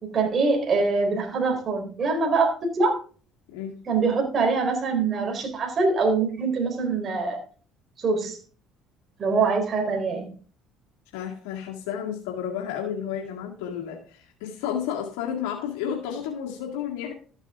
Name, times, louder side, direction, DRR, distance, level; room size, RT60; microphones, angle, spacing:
voice 1, 0.0-3.0 3.9-7.4 8.0-8.4 9.2-10.3, right 4 dB, 40° right, 2 dB, 3.9 m, -24 dB
voice 2, 3.5-3.9 11.1-17.1, left 8 dB, 85° left, 0 dB, 2.0 m, -32 dB
13.5 x 8.2 x 3.6 m, 0.40 s
supercardioid pair, 85°, 0 cm